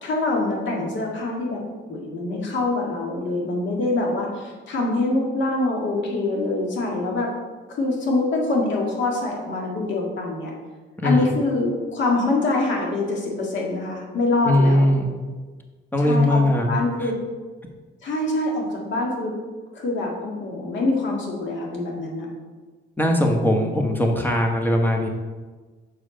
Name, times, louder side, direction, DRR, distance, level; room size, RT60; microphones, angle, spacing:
voice 1, 0.0-1.6 1.9-7.3 7.7-10.5 11.0-14.9 16.0-16.4 16.7-17.1 18.0-19.3 19.7-22.3, left 2 dB, 70° left, -1 dB, 2.0 m, -24 dB
voice 2, 11.0-11.3 14.4-15.1 15.9-17.1 23.0-25.1, left 1 dB, 10° left, 2 dB, 1.2 m, -20 dB
6.4 x 4.9 x 5.1 m, 1.4 s
cardioid pair, 90°, 20 cm